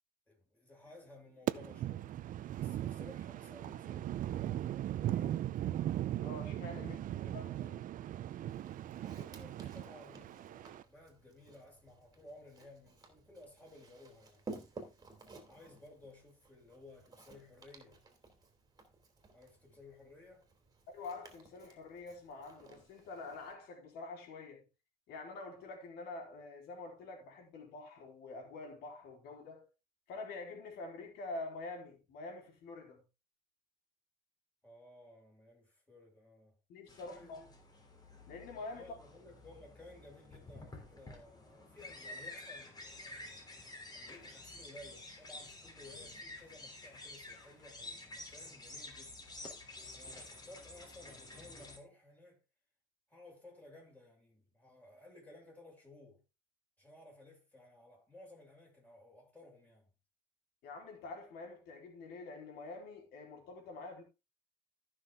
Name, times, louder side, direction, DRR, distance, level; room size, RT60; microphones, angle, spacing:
voice 1, 0.3-2.2 2.6-5.5 6.7-7.9 9.0-14.4 14.7-14.9 15.2-18.0 19.3-20.4 34.6-36.6 36.9-37.5 38.7-49.2 49.9-52.4 53.1-56.2 56.8-59.9, left 2 dB, 10° left, 6.2 m, -57 dB
sound 1, 1.5-10.8, right 12 dB, 55° right, 0.6 m, -38 dB
voice 2, 6.2-7.0 7.3-7.5 20.9-24.7 25.1-29.7 30.1-33.0 36.7-37.4 38.3-38.9 60.6-64.0, left 3 dB, 80° left, 3.8 m, -46 dB
Walk footsteps, 8.5-23.5, right 3 dB, 25° right, 2.8 m, -55 dB
sound 2, 36.9-51.8, left 2 dB, 25° left, 3.3 m, -50 dB
14.0 x 6.2 x 3.7 m
cardioid pair, 115°, 16 cm